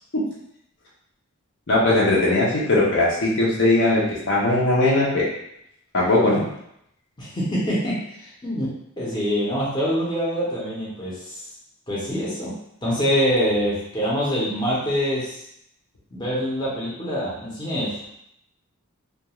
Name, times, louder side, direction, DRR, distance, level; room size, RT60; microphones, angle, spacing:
voice 1, 1.7-4.0 4.3-5.2 5.9-6.4, left 2 dB, 55° left, -6 dB, 0.6 m, -19 dB
voice 2, 7.2-11.4 11.9-12.5 12.8-15.4 16.1-18.0, equal, 20° left, -7 dB, 0.7 m, -25 dB
2.3 x 2.3 x 2.9 m, 0.77 s
head